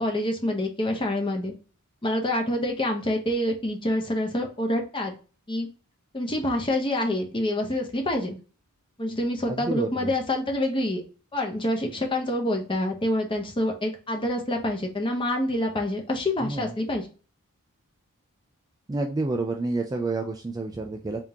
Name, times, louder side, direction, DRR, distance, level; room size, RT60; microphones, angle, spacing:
voice 1, 0.0-1.5 2.0-5.1 5.5-5.7 6.1-8.4 9.0-11.0 11.3-17.1, left 1 dB, 20° left, 2 dB, 0.8 m, -27 dB
voice 2, 9.5-10.1 16.4-16.7 18.9-21.2, right 3 dB, 15° right, 3 dB, 0.3 m, -29 dB
3.6 x 2.8 x 3.5 m, 0.36 s
head